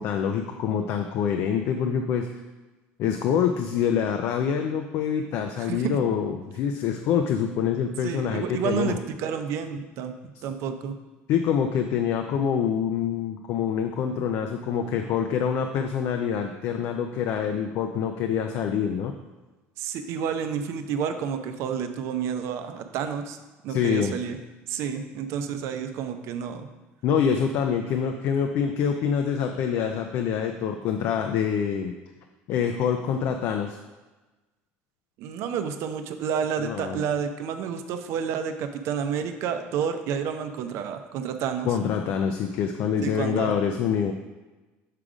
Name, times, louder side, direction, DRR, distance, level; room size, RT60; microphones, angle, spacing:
voice 1, 0.0-2.3 3.0-9.0 11.3-19.1 23.7-24.2 27.0-31.9 32.5-33.8 36.6-37.0 41.6-44.1, left 7 dB, 60° left, 5 dB, 0.4 m, -26 dB
voice 2, 8.0-10.1 10.4-10.9 19.8-23.4 23.6-24.4 24.7-26.7 35.2-41.7 43.0-43.5, right 7 dB, 65° right, 7 dB, 0.6 m, -30 dB
6.6 x 3.7 x 4.9 m, 1.2 s
cardioid pair, 125°, 5 cm